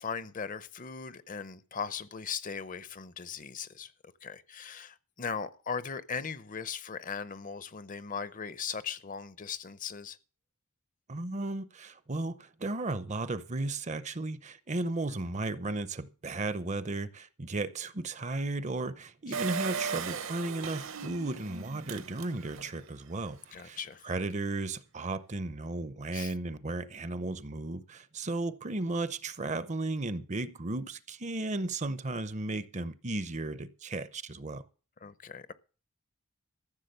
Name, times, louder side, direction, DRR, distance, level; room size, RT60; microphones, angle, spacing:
voice 1, 0.0-3.9 4.2-10.2 23.5-24.1 26.1-26.3 35.0-35.5, left 6 dB, 35° left, 0.6 m, -38 dB
voice 2, 11.1-23.8 24.0-34.6, right 2 dB, 30° right, 0.6 m, -35 dB
Engine, 19.3-22.8 23.3-23.4 23.5-23.6, right 6 dB, 60° right, 1.0 m, -37 dB
14.5 x 7.2 x 6.7 m
head